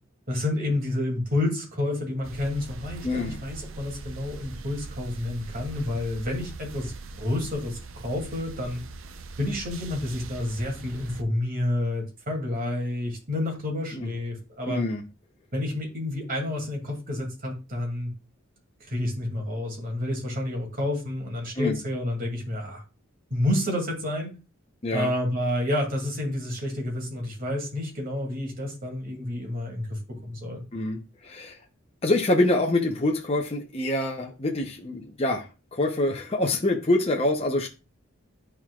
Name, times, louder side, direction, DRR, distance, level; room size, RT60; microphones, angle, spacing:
voice 1, 0.3-8.8 9.4-14.8 15.5-18.1 18.9-22.8 23.3-24.3 24.9-30.6, left 1 dB, 45° right, 2.3 m, -29 dB
sound 1, 2.2-11.2, right 3 dB, 85° right, 0.6 m, -41 dB
voice 2, 3.0-3.4 13.9-14.1 14.7-15.0 21.6-21.8 24.8-25.1 30.7-31.6 32.0-37.7, left 2 dB, 30° left, 0.8 m, -25 dB
11.0 x 4.5 x 2.3 m
head